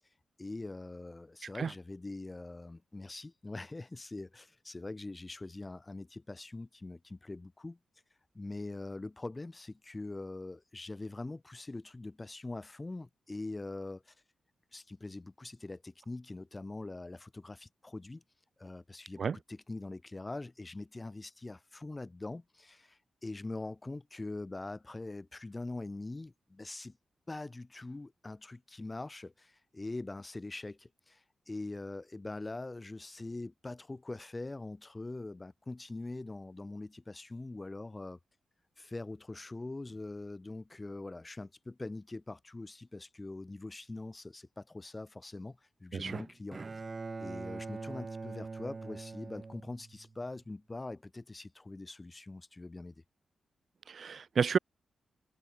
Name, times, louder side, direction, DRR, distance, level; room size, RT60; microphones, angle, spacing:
voice 1, 0.4-7.8 8.3-14.1 14.7-18.2 18.6-27.0 27.3-38.2 38.8-46.6 47.2-52.9, left 2 dB, 25° left, 7.6 m, -43 dB
Bowed string instrument, 46.1-50.3, right 4 dB, 40° right, 6.4 m, -43 dB
voice 2, 53.9-54.6, right 6 dB, 60° right, 0.4 m, -30 dB
cardioid pair, 65°, 0 cm